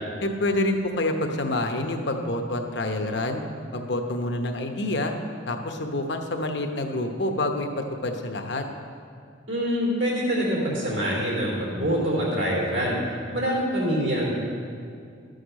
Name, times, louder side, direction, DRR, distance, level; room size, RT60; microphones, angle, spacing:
voice 1, 0.2-3.4 3.7-5.1 5.5-8.6, left 1 dB, 60° left, 5 dB, 1.0 m, -27 dB
voice 2, 9.5-13.0 13.3-14.3, equal, 80° right, -4 dB, 3.4 m, -25 dB
12.5 x 6.6 x 6.4 m, 2.3 s
head